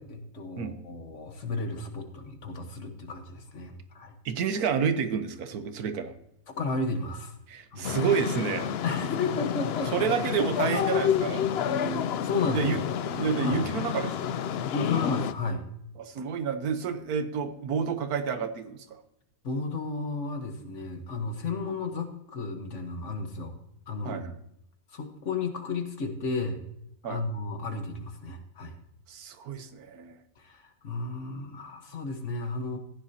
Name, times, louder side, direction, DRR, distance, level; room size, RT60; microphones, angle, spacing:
voice 1, 0.0-4.1 6.6-7.3 7.7-7.9 8.8-10.0 11.6-12.7 13.4-13.6 14.7-15.6 19.4-23.6 23.9-24.2 24.9-26.6 27.1-28.8 30.4-32.8, left 3 dB, 55° left, 6 dB, 1.5 m, -33 dB
voice 2, 4.2-6.1 7.5-8.8 9.9-11.5 12.5-14.3 16.0-18.9 24.0-24.4 27.0-27.2 29.1-30.2, right 6 dB, 85° right, 10 dB, 1.4 m, -29 dB
sound 1, 7.8-15.3, left 8 dB, 70° left, 0.6 m, -29 dB
15.0 x 9.9 x 2.8 m, 0.77 s
omnidirectional pair, 1.6 m